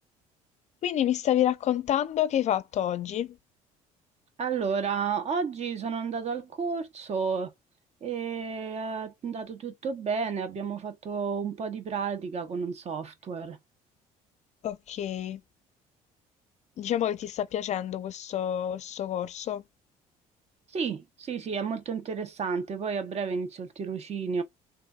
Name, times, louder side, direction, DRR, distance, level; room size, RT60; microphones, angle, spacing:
voice 1, 0.8-3.4 14.6-15.4 16.8-19.6, left 11 dB, 50° left, 0.4 m, -28 dB
voice 2, 4.4-7.5 8.0-13.6 20.7-24.4, right 5 dB, 45° right, 1.0 m, -31 dB
3.9 x 2.6 x 2.4 m
supercardioid pair, 80°, 15 cm